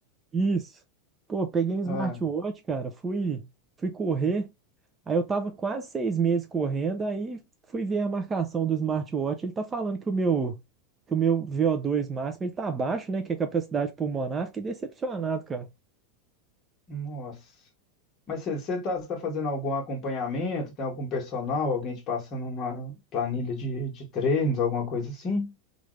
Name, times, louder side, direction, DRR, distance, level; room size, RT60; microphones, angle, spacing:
voice 1, 1.3-3.5 3.8-4.5 5.1-7.4 7.7-10.6 11.1-15.7, right 5 dB, 20° right, 0.5 m, -28 dB
voice 2, 1.8-2.2 16.9-17.4 18.3-25.5, left 3 dB, 35° left, 1.5 m, -30 dB
3.3 x 2.5 x 3.1 m
supercardioid pair, 120°, 0 cm